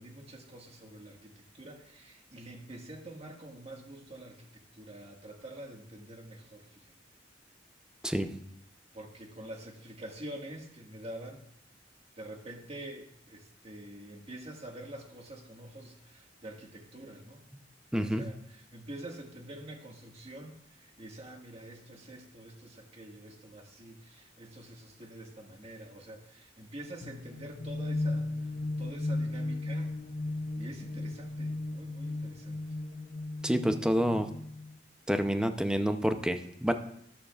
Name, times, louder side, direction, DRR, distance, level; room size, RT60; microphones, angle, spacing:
voice 1, 0.0-6.9 8.9-11.4 12.2-17.4 17.9-29.9 30.3-32.6, right 1 dB, 35° right, 1 dB, 1.8 m, -46 dB
voice 2, 17.9-18.2 33.4-34.3 35.1-36.7, equal, 5° right, 7 dB, 0.6 m, -28 dB
sound 1, 27.0-34.8, left 2 dB, 55° left, 0.6 m, -36 dB
13.5 x 11.5 x 2.4 m, 0.73 s
head